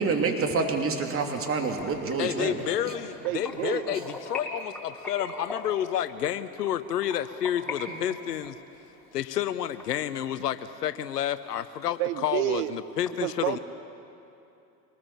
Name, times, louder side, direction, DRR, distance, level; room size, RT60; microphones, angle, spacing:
voice 1, 0.0-2.9 3.9-4.0 7.9-8.0, right 4 dB, 30° right, 3 dB, 3.0 m, -28 dB
sound 1, 1.3-7.8 8.1-10.6 11.0-11.1 11.5-11.6 12.0-12.1 12.3-13.1, left 3 dB, ahead, 5.3 m, -41 dB
voice 2, 2.2-8.6 9.1-13.6, left 10 dB, 85° left, 13 dB, 0.8 m, -30 dB
voice 3, 3.2-3.9 12.0-12.8 13.2-13.6, right 16 dB, 65° right, 13 dB, 1.3 m, -29 dB
24.5 x 19.5 x 7.3 m, 2.7 s
hypercardioid pair, 80°, 47 cm